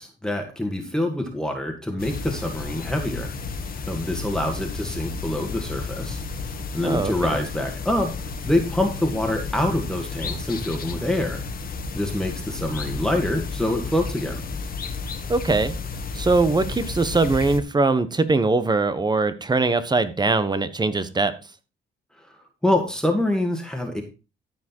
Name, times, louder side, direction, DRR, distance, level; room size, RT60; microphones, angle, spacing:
voice 1, 0.0-3.3 3.9-6.2 6.7-8.1 8.4-11.4 11.9-14.4 22.6-24.0, left 1 dB, 5° left, 3 dB, 2.1 m, -25 dB
sound 1, 2.0-17.6, left 4 dB, 50° left, 1.7 m, -32 dB
voice 2, 6.8-7.4 15.3-15.7 16.1-21.3, right 3 dB, 20° right, 12 dB, 1.3 m, -21 dB
14.0 x 5.2 x 4.5 m, 0.32 s
cardioid pair, 90°, 20 cm